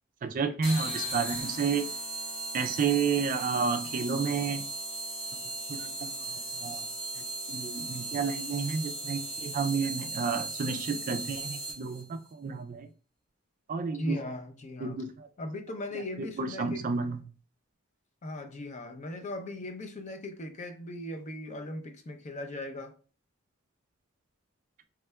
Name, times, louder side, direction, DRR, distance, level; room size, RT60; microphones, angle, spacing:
voice 1, 0.2-1.9 2.5-4.6 5.7-6.9 7.2-12.9 13.7-14.2 14.8-15.3 15.9-17.2, right 5 dB, 40° right, 0.3 m, -31 dB
sound 1, 0.6-12.0, right 2 dB, 65° left, 1.4 m, -37 dB
voice 2, 14.0-15.0 15.4-16.8 18.2-22.9, left 1 dB, 35° left, 0.5 m, -38 dB
3.6 x 3.2 x 2.2 m
head